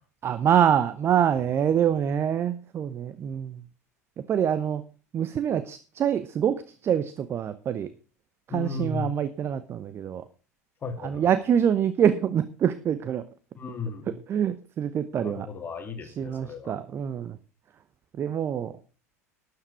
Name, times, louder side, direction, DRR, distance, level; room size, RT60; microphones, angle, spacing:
voice 1, 0.2-3.6 4.3-4.8 5.1-7.9 8.5-10.2 11.0-13.2 14.3-15.5 16.2-17.4 18.2-18.7, right 9 dB, 30° right, 13 dB, 0.9 m, -25 dB
voice 2, 8.5-9.2 10.8-11.3 13.6-14.2 15.2-16.8, left 4 dB, 25° left, 6 dB, 2.4 m, -35 dB
13.0 x 9.8 x 4.7 m, 0.36 s
figure-of-eight pair, 75°, 8 cm